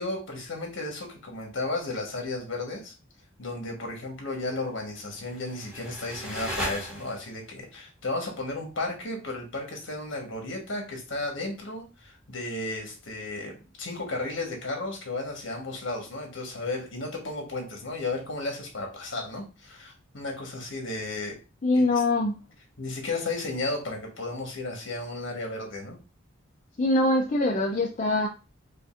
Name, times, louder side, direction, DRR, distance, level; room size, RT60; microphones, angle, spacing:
voice 1, 0.0-2.9 3.4-21.4 21.8-21.9 22.8-26.0, left 2 dB, 70° left, 1 dB, 1.4 m, -34 dB
sound 1, 5.1-7.5, equal, 5° right, 1.3 m, -36 dB
voice 2, 21.6-22.4 26.8-28.3, left 2 dB, 40° left, 0 dB, 0.4 m, -23 dB
5.1 x 2.5 x 2.5 m, 0.30 s
head